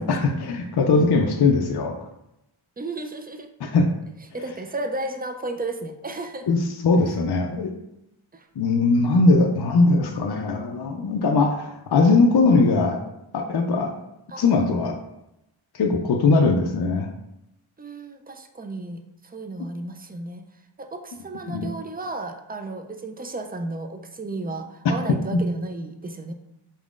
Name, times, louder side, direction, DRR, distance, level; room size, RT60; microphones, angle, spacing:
voice 1, 0.0-2.0 3.6-3.9 6.5-7.7 8.6-13.0 13.3-13.9 14.4-15.0 15.7-17.1 21.5-21.7 25.3-25.4, left 3 dB, 55° left, 3 dB, 0.5 m, -20 dB
voice 2, 0.9-1.3 2.8-3.5 4.3-6.5 8.3-8.5 14.3-14.5 17.8-20.4 20.8-26.3, right 2 dB, 20° right, 6 dB, 0.3 m, -33 dB
4.1 x 3.6 x 2.4 m, 0.85 s
wide cardioid pair, 45°, 49 cm